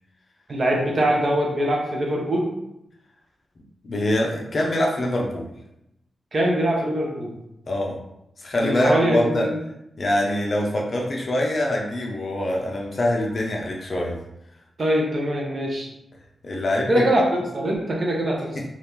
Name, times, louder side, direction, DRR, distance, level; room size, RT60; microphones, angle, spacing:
voice 1, 0.5-2.5 6.3-7.3 8.6-9.6 14.8-15.9 16.9-18.5, right 1 dB, 40° right, -1 dB, 0.6 m, -22 dB
voice 2, 3.8-5.4 7.7-8.0 8.4-9.5 10.0-14.2 16.4-17.0 18.5-18.6, left 1 dB, 35° left, -1 dB, 0.5 m, -24 dB
2.9 x 2.4 x 3.5 m, 0.84 s
wide cardioid pair, 160°, 0 cm